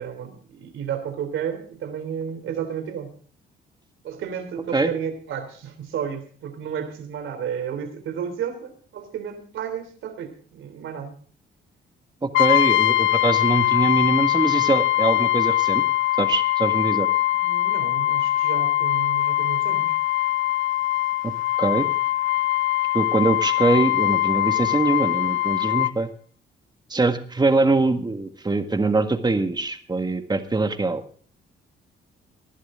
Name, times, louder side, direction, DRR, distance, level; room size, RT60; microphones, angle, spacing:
voice 1, 0.0-3.1 4.0-11.2 17.3-20.0, right 8 dB, 80° right, 8 dB, 3.3 m, -32 dB
voice 2, 12.2-15.8 16.2-17.1 21.2-21.3 21.6-21.9 22.9-26.1 26.9-31.0, right 3 dB, 20° right, 7 dB, 1.8 m, -23 dB
Brass instrument, 12.3-26.0, left 15 dB, 80° left, 0.5 m, -22 dB
19.5 x 11.5 x 3.7 m, 0.43 s
cardioid pair, 90°, 20 cm